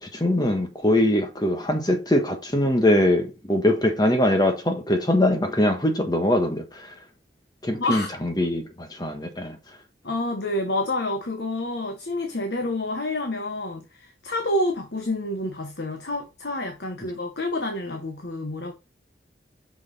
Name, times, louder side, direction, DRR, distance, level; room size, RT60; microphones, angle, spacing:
voice 1, 0.0-6.9 7.6-9.6, left 1 dB, 25° left, 1.3 m, -22 dB
voice 2, 7.8-8.1 10.0-18.7, left 1 dB, 75° left, 1.2 m, -28 dB
6.4 x 5.7 x 4.1 m
head